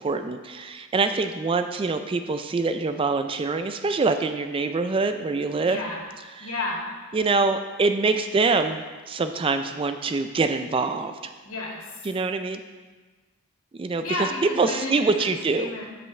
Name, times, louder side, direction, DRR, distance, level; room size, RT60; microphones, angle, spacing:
voice 1, 0.0-5.8 6.4-6.5 7.1-11.3 12.0-12.6 13.8-14.3 14.6-15.7, right 3 dB, 25° right, 8 dB, 0.3 m, -25 dB
voice 2, 5.6-6.0 6.4-6.9 11.4-11.9 14.0-15.9, left 2 dB, 75° left, -2 dB, 2.1 m, -32 dB
13.5 x 5.6 x 3.2 m, 1.3 s
head